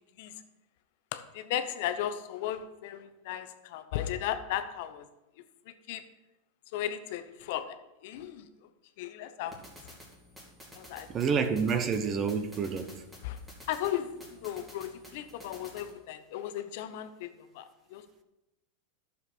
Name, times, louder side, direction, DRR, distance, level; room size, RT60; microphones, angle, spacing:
voice 1, 1.1-5.1 5.7-6.0 6.7-7.8 8.0-8.5 9.0-9.5 9.8-9.9 10.7-11.1 13.2-13.4 13.7-18.1, left 11 dB, 60° left, 10 dB, 0.8 m, -36 dB
sound 1, 9.5-15.9, equal, 10° right, 2.4 m, -52 dB
voice 2, 11.1-13.0, right 6 dB, 25° right, 9 dB, 0.8 m, -29 dB
11.0 x 7.0 x 4.3 m, 0.98 s
supercardioid pair, 140°, 0 cm